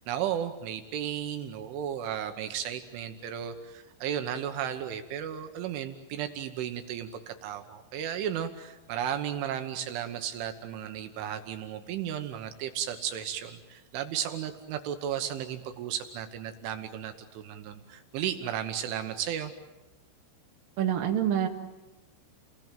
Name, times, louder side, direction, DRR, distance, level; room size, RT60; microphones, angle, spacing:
voice 1, 0.1-19.5, right 9 dB, 80° right, 7 dB, 3.6 m, -34 dB
voice 2, 20.8-21.5, right 10 dB, 55° right, 2 dB, 3.2 m, -26 dB
30.0 x 20.0 x 9.1 m, 1.0 s
omnidirectional pair, 5.7 m